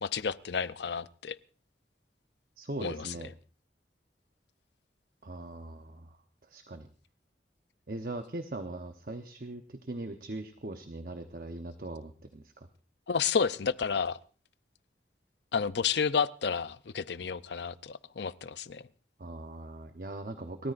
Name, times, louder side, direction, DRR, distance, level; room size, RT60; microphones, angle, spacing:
voice 1, 0.0-1.4 2.8-3.1 13.1-14.2 15.5-18.8, left 6 dB, 75° left, 15 dB, 0.6 m, -31 dB
voice 2, 2.6-3.3 5.2-6.2 6.4-6.9 7.9-12.7 19.2-20.7, right 2 dB, 50° right, 7 dB, 0.9 m, -40 dB
30.0 x 13.5 x 2.5 m, 0.36 s
head